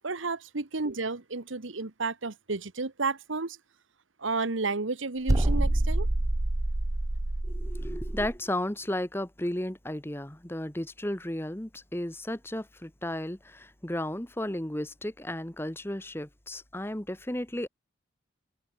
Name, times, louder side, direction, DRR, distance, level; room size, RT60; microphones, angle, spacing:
voice 1, 0.0-3.6 4.2-6.1, right 3 dB, 85° right, 1.3 m, -32 dB
sound 1, 5.3-8.4, right 1 dB, 15° right, 0.4 m, -27 dB
voice 2, 7.5-17.7, left 1 dB, 10° left, 1.1 m, -34 dB
head